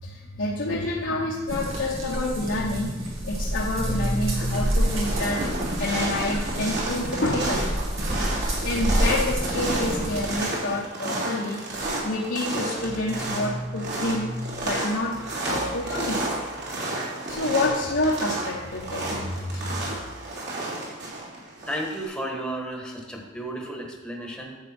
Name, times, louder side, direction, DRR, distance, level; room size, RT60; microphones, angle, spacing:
voice 1, 0.0-5.5 5.8-7.9 8.4-16.3 17.3-19.9, left 2 dB, 65° left, -4 dB, 1.1 m, -28 dB
sound 1, 1.5-10.3, equal, 85° right, 2.3 m, -28 dB
sound 2, 3.5-3.9 4.2-22.0, right 2 dB, 60° right, 3.2 m, -31 dB
voice 2, 21.6-24.6, right 1 dB, 5° left, 0 dB, 1.3 m, -33 dB
9.8 x 8.0 x 4.4 m, 1.2 s
head